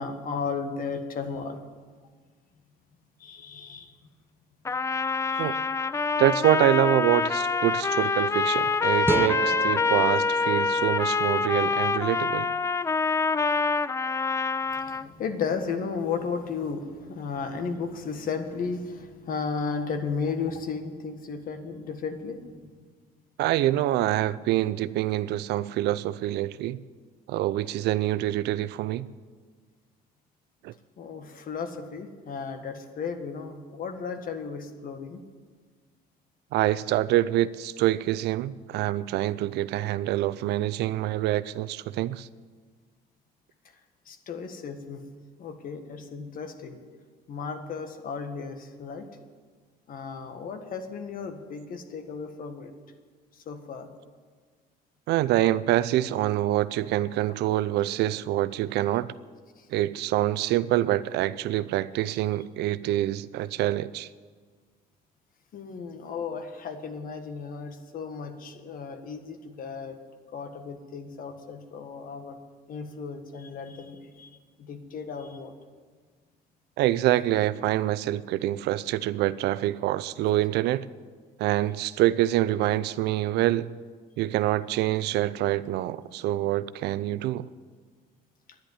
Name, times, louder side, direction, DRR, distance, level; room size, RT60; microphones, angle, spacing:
voice 1, 0.0-1.6 3.2-3.9 5.3-5.6 8.0-8.1 14.7-22.7 31.0-35.2 44.0-45.0 45.4-46.8 47.3-49.1 49.9-52.7 53.3-53.9 59.6-59.7 65.5-70.0 70.3-72.4 72.7-75.5, left 5 dB, 55° left, 1.6 m, -34 dB
Trumpet, 4.6-15.1, left 4 dB, 15° left, 0.3 m, -26 dB
voice 2, 6.2-12.5 23.4-26.8 27.3-29.1 30.6-30.7 36.5-42.3 55.1-59.1 59.7-64.1 76.8-80.9 81.4-83.7 84.2-87.5, right 14 dB, 80° right, 0.5 m, -26 dB
sound 1, 9.0-12.2, right 4 dB, 15° right, 0.9 m, -32 dB
10.5 x 10.5 x 9.6 m
cardioid pair, 110°, 17 cm